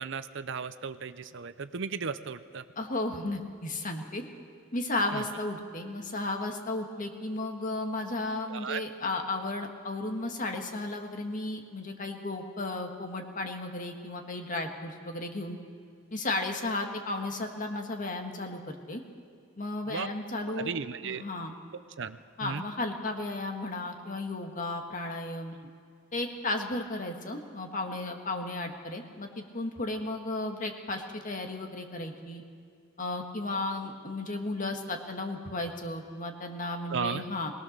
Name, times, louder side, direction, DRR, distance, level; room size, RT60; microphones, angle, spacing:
voice 1, 0.0-2.6 5.1-5.3 8.5-8.8 19.9-20.1 20.5-21.2 22.0-22.7 25.6-25.7 36.9-37.2, right 5 dB, 65° right, 12 dB, 0.7 m, -35 dB
voice 2, 2.8-4.3 4.7-15.6 16.1-19.0 19.6-20.7 21.0-21.5 22.4-25.5 26.1-32.4 33.0-37.5, left 2 dB, 40° left, 4 dB, 1.8 m, -34 dB
21.5 x 19.0 x 6.7 m, 2.2 s
head